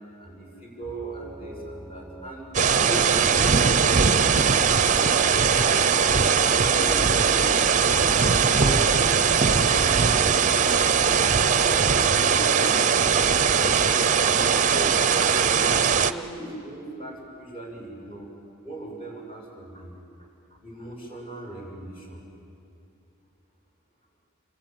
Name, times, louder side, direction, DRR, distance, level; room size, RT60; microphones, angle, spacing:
voice 1, 0.2-2.5 2.7-3.8 4.1-6.2 6.5-8.1 8.6-10.3 10.8-13.8 14.1-15.5 15.9-18.3 18.6-19.9 20.2-22.2, right 2 dB, 25° left, -2 dB, 6.6 m, -39 dB
sound 1, 0.8-11.8, right 1 dB, 5° right, 2.6 m, -42 dB
sound 2, 2.5-16.1, right 6 dB, 35° right, 0.7 m, -20 dB
27.5 x 23.5 x 9.1 m, 2.6 s
head